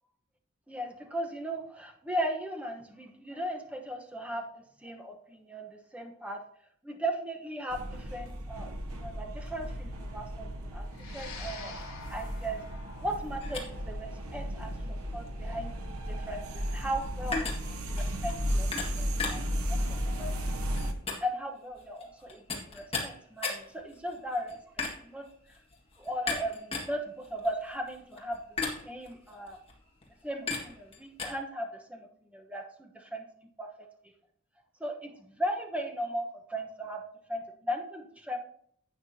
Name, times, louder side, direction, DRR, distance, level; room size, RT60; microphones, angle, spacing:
voice 1, 0.7-6.4 6.8-11.7 12.1-12.6 13.0-18.7 19.0-20.5 21.2-25.6 26.0-28.4 28.8-29.6 30.2-33.2 33.6-33.9 34.8-37.0 37.3-38.4, equal, 5° right, 2 dB, 1.0 m, -37 dB
sound 1, 7.7-20.9, equal, 85° right, 1.1 m, -35 dB
sound 2, 10.9-19.5, left 4 dB, 70° left, 3.1 m, -50 dB
sound 3, 13.4-31.3, left 4 dB, 25° left, 1.7 m, -39 dB
11.5 x 8.2 x 2.8 m, 0.64 s
head